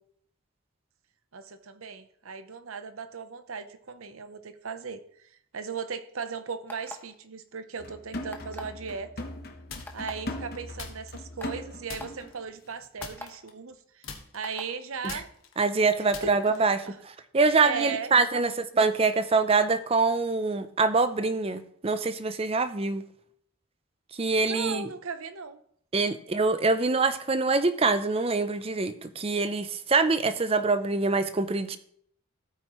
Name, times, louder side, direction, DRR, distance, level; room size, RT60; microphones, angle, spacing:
voice 1, 1.3-9.2 9.9-14.1 14.3-15.3 16.2-16.4 16.9-17.0 17.6-18.6 24.4-25.6 30.4-30.5, right 5 dB, 70° right, 10 dB, 0.8 m, -37 dB
sound 1, 6.7-7.2 8.3-8.8 9.9-10.1 10.9-11.0 11.4-11.5 11.9-12.1 13.0-13.3 14.4-14.7, left 1 dB, 10° left, 0.9 m, -40 dB
sound 2, 7.8-12.4 12.7-12.9, left 1 dB, 45° left, 1.0 m, -39 dB
sound 3, 9.7-10.2 10.8-11.6 11.9-12.4 13.0-13.8 14.0-16.8, left 5 dB, 65° left, 1.6 m, -43 dB
voice 2, 15.6-16.9 17.3-23.0 24.2-24.9 25.9-31.8, right 3 dB, 25° right, 11 dB, 0.5 m, -25 dB
14.0 x 8.8 x 3.1 m, 0.66 s
head